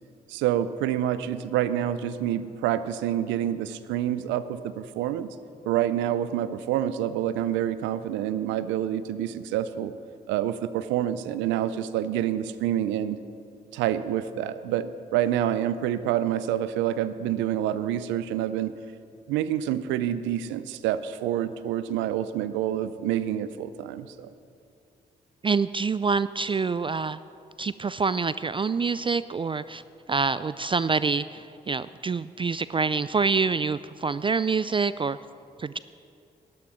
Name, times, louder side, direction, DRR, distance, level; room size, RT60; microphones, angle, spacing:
voice 1, 0.3-5.3 5.7-9.9 10.3-13.2 13.7-18.7 19.3-24.3, right 11 dB, 90° right, 14 dB, 0.5 m, -27 dB
voice 2, 25.4-27.2 27.6-29.8 30.1-35.2 35.6-35.8, right 4 dB, 30° right, 15 dB, 0.3 m, -26 dB
11.5 x 11.5 x 6.1 m, 2.6 s
hypercardioid pair, 45°, 19 cm